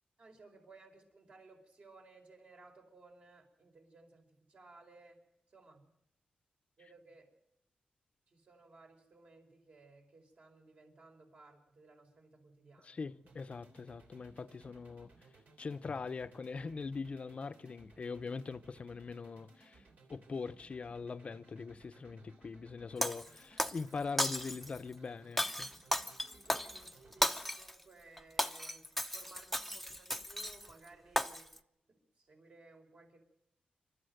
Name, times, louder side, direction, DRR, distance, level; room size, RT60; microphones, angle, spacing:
voice 1, 0.2-4.2 4.5-5.2 5.5-5.9 6.8-7.2 8.3-13.3 26.2-28.8 29.1-31.5 31.9-33.2, right 3 dB, 55° right, 4.6 m, -59 dB
voice 2, 12.8-15.1 15.6-19.8 20.1-25.7, left 4 dB, 45° left, 0.7 m, -42 dB
sound 1, 13.2-27.4, right 3 dB, 70° right, 3.3 m, -62 dB
Shatter, 23.0-23.8 24.2-24.8 25.4-27.8 28.2-30.7 31.2-31.6, left 1 dB, ahead, 0.7 m, -35 dB
27.5 x 12.5 x 7.8 m
wide cardioid pair, 115°, 3 cm